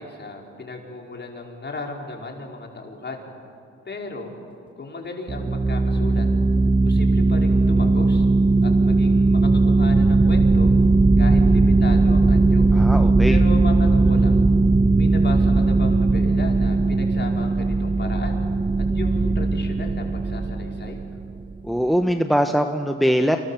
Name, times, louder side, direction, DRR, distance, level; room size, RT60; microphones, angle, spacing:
voice 1, 0.0-3.2 3.9-4.3 4.8-6.3 6.8-8.3 8.6-10.7 11.2-12.6 13.3-14.4 15.0-18.4 18.8-21.0, left 2 dB, 35° left, 1 dB, 5.4 m, -35 dB
sound 1, 5.3-21.5, right 3 dB, 15° right, 0.8 m, -18 dB
voice 2, 12.7-13.4 21.6-23.4, equal, ahead, 5 dB, 1.4 m, -21 dB
30.0 x 26.5 x 7.5 m, 2.6 s
cardioid pair, 90°, 30 cm